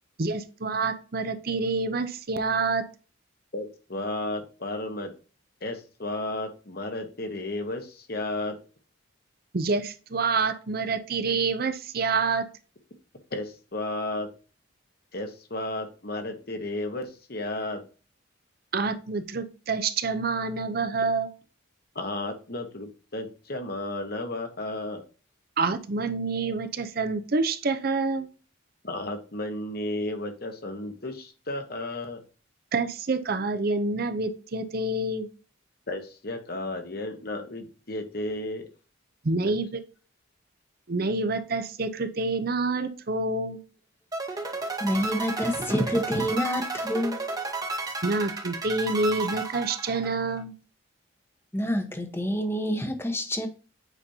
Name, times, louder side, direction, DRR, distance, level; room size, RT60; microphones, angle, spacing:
voice 1, 0.2-2.8 9.5-12.4 18.7-21.3 25.6-28.3 32.7-35.3 39.2-39.8 40.9-43.6 48.0-50.5, right 3 dB, 45° right, 0.6 m, -27 dB
voice 2, 3.5-5.1 5.6-8.6 13.3-14.3 15.1-17.8 21.9-25.0 28.8-32.2 35.9-38.7 39.4-39.5, left 2 dB, 50° left, 1.1 m, -33 dB
sound 1, 44.1-50.4, right 3 dB, 20° right, 0.9 m, -33 dB
voice 3, 44.8-47.2 51.5-53.5, equal, 10° left, 0.9 m, -27 dB
8.3 x 5.1 x 2.8 m
head